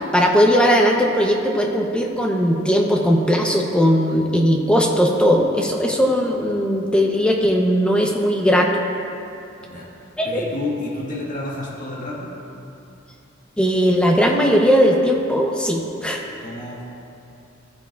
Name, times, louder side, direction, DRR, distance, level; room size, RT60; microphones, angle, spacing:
voice 1, 0.1-8.7 10.2-10.3 13.6-16.2, equal, 5° left, 0 dB, 0.7 m, -18 dB
voice 2, 10.2-12.3 16.3-16.8, left 2 dB, 45° left, -5 dB, 1.5 m, -30 dB
14.0 x 8.3 x 2.4 m, 2.7 s
head